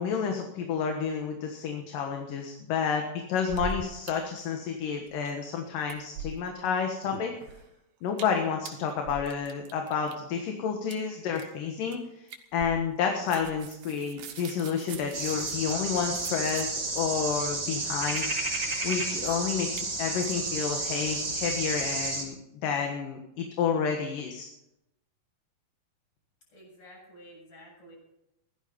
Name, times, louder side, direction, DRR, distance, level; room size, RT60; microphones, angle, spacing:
voice 1, 0.0-7.3 8.0-12.0 12.5-18.5 18.8-22.3 22.6-24.5, left 6 dB, 75° left, 3 dB, 3.0 m, -30 dB
sound 1, 3.4-4.1 4.4-4.5 4.8-5.5 5.8-6.7 7.0-7.7 8.1-8.4 8.7-10.1 10.9-11.0 11.3-11.6 11.9-12.0 12.3-13.0 13.3-17.0 17.8-18.3 18.8-18.9 19.2-19.4 19.8-19.9 20.2-20.3, right 5 dB, 90° right, 3.2 m, -41 dB
sound 2, 15.1-22.2, right 3 dB, 25° right, 4.0 m, -31 dB
voice 2, 26.5-28.0, equal, 50° left, -3 dB, 8.9 m, -51 dB
16.0 x 13.0 x 5.2 m, 0.84 s
omnidirectional pair, 4.0 m